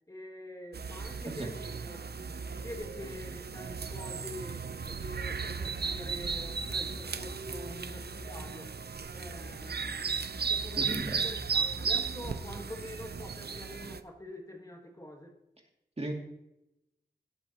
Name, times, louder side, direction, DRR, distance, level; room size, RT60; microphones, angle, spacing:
voice 1, 0.1-8.7 9.1-10.1 10.5-15.4, left 1 dB, 20° left, 2 dB, 1.5 m, -46 dB
sound 1, 0.7-14.0, right 5 dB, 65° right, 0.6 m, -35 dB
sound 2, 5.5-13.2, equal, 20° right, 1.0 m, -46 dB
voice 2, 10.8-11.2 16.0-16.1, right 1 dB, 35° right, 1 dB, 2.4 m, -35 dB
17.5 x 7.9 x 2.9 m, 0.88 s
wide cardioid pair, 65°, 18 cm